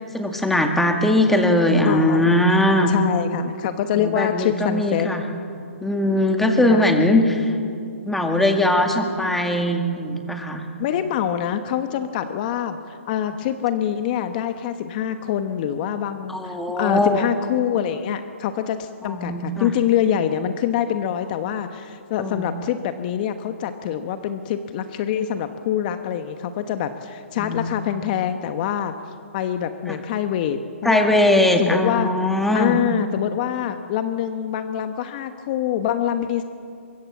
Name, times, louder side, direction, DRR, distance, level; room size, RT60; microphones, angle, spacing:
voice 1, 0.1-2.9 4.0-5.2 5.8-7.5 8.1-10.6 16.3-17.2 19.0-19.7 22.2-22.5 27.4-27.7 29.9-30.0 30.8-32.8, left 1 dB, 5° left, 3 dB, 2.1 m, -20 dB
voice 2, 1.8-2.3 2.9-5.1 6.7-6.9 10.8-28.9 29.3-32.1 32.5-36.4, left 10 dB, 35° left, 8 dB, 1.2 m, -25 dB
24.0 x 23.5 x 7.3 m, 2.4 s
hypercardioid pair, 145°, 7 cm